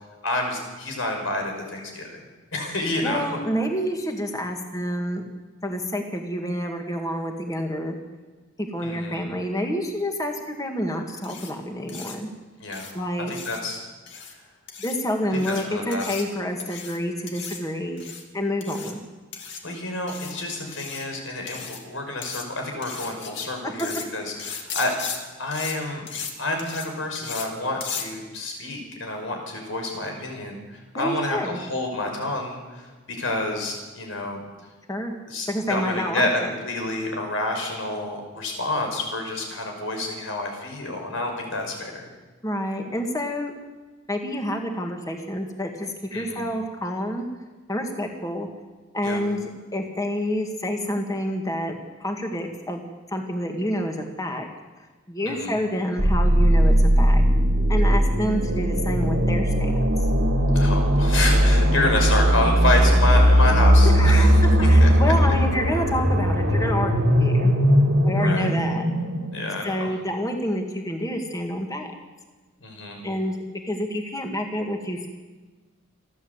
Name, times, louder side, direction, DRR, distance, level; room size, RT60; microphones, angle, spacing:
voice 1, 0.2-2.2 2.5-3.2 8.8-9.3 12.6-12.9 13.3-13.8 15.3-16.1 19.6-24.9 25.4-26.1 26.4-34.4 35.3-42.1 46.1-46.5 49.0-49.2 55.3-55.5 60.5-65.1 68.1-68.5 69.3-69.9 72.6-73.0, left 2 dB, 85° left, 3 dB, 5.6 m, -28 dB
voice 2, 3.0-5.2 5.6-8.0 8.6-12.3 12.9-13.3 14.8-18.0 18.3-19.0 23.6-23.9 24.4-24.5 30.9-31.6 34.9-35.1 35.5-36.5 42.4-43.5 44.1-47.3 47.7-48.5 48.9-52.8 53.1-54.5 55.1-57.2 57.7-59.7 63.9-64.3 64.7-67.5 67.9-68.8 69.6-71.9 73.0-75.1, equal, 15° left, 3 dB, 2.2 m, -28 dB
sound 1, 11.2-11.5 11.9-12.2 12.7-12.9 13.3-13.6 14.1-14.3 14.7-15.0 15.3-15.6 15.9-16.2 16.6-17.0 17.3-17.6 18.0-18.2 18.6-18.9 19.3-19.6 20.1-20.3 20.7-21.0 21.5-21.8 22.2-22.4 22.8-23.5 23.8-24.1 24.4-25.2 25.5-25.8 26.1-26.3 26.6-26.9 27.2-27.5 27.8-28.1, left 6 dB, 65° left, 2.6 m, -36 dB
sound 2, 56.0-69.7, equal, 75° right, 2.4 m, -18 dB
28.5 x 11.5 x 8.2 m, 1.3 s
head